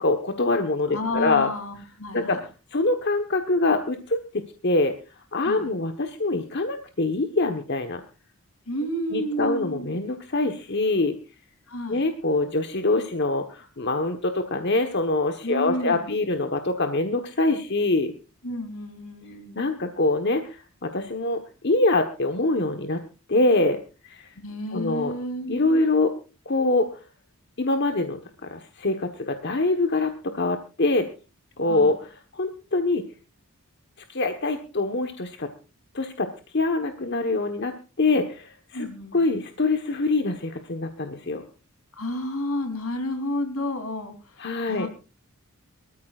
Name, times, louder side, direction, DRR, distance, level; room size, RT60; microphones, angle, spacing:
voice 1, 0.0-1.5 2.1-2.4 2.7-4.9 5.3-8.0 9.1-11.1 11.9-18.1 19.5-23.0 23.3-24.3 24.7-25.1 25.5-26.1 26.5-26.9 27.6-28.2 28.5-31.1 31.6-32.0 32.3-33.0 34.1-35.5 35.9-36.3 36.5-37.7 38.0-38.9 39.1-41.4 44.4-44.9, left 2 dB, 50° left, 6 dB, 1.3 m, -24 dB
voice 2, 0.9-2.4 5.4-5.8 8.7-10.0 11.7-12.0 15.4-16.2 18.4-19.7 24.3-25.9 31.7-31.9 38.7-39.2 41.9-44.9, left 1 dB, 75° left, 7 dB, 3.4 m, -31 dB
24.0 x 14.0 x 2.5 m, 0.33 s
head